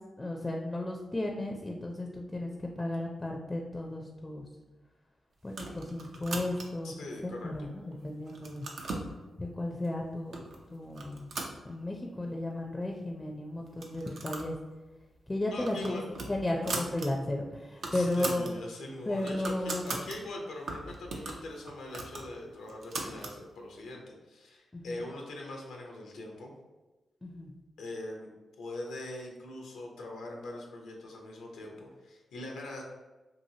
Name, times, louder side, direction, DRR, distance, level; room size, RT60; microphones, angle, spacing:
voice 1, 0.2-4.4 5.4-6.9 7.2-8.7 9.4-10.4 10.7-11.3 11.6-14.5 15.3-16.0 16.3-18.5 19.1-19.9 24.7-25.0 27.2-27.5, left 1 dB, 25° left, 0 dB, 0.4 m, -34 dB
sound 1, 5.5-6.9 7.5-8.0 8.3-9.1 9.8-9.9 10.3-10.6 10.9-12.2 12.5-12.6 12.8-12.9 13.7-14.5 14.9-15.0 15.4-17.1 17.4-17.5 17.7-18.5 18.9-20.2 20.7-23.4, right 3 dB, 75° right, 0.4 m, -39 dB
voice 2, 6.8-7.7 15.5-16.1 17.9-26.5 27.8-28.3 28.6-32.8, left 2 dB, 85° left, 0 dB, 0.5 m, -42 dB
2.8 x 2.6 x 2.7 m, 1.2 s
supercardioid pair, 45°, 0 cm